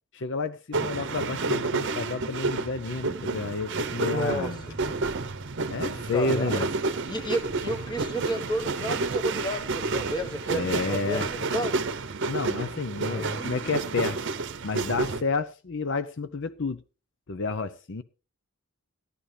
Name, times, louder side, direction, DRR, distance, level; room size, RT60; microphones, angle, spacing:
voice 1, 0.1-4.6 5.7-6.7 10.5-11.3 12.3-14.2 14.6-16.8 17.3-18.0, left 3 dB, 55° left, 0.6 m, -30 dB
sound 1, 0.7-15.2, right 3 dB, 55° right, 0.8 m, -30 dB
voice 2, 4.1-5.1 5.9-6.7 7.0-11.8 13.0-13.6, right 1 dB, 20° left, 1.2 m, -32 dB
sound 2, 7.1-11.5, left 1 dB, 75° left, 2.7 m, -49 dB
16.0 x 11.5 x 3.3 m
head